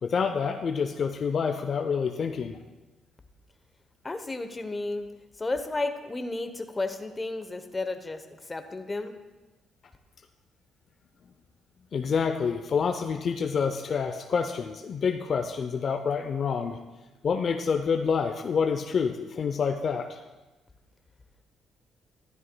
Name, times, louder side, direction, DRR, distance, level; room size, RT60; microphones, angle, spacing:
voice 1, 0.0-2.6 11.9-16.8 17.2-20.2, left 6 dB, 50° left, 6 dB, 0.5 m, -27 dB
voice 2, 4.0-5.1 5.4-9.1, left 2 dB, 20° left, 8 dB, 0.8 m, -32 dB
12.5 x 11.0 x 2.2 m, 1.1 s
cardioid pair, 90°, 0 cm